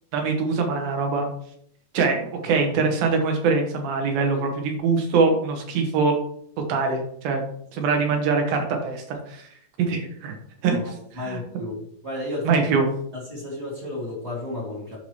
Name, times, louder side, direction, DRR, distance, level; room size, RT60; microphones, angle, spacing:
voice 1, 0.1-1.3 1.9-6.1 6.7-7.4 7.7-9.5 9.8-10.4 10.6-10.9 11.2-11.4 12.4-12.8, right 4 dB, 80° right, 3 dB, 3.1 m, -23 dB
voice 2, 10.7-11.8 12.0-12.8 13.1-15.0, left 1 dB, 25° right, -5 dB, 1.6 m, -33 dB
11.5 x 4.4 x 3.1 m, 0.65 s
omnidirectional pair, 4.2 m